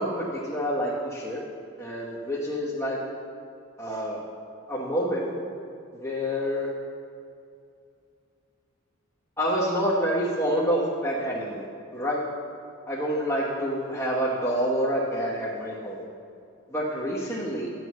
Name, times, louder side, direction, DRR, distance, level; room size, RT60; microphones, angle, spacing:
voice 1, 0.0-1.4 1.8-3.0 3.8-4.2 4.7-5.3 6.0-6.7 9.4-11.6 11.9-12.2 12.9-16.0 16.7-17.7, equal, 10° left, -9 dB, 1.2 m, -27 dB
11.5 x 9.1 x 3.1 m, 2.4 s
head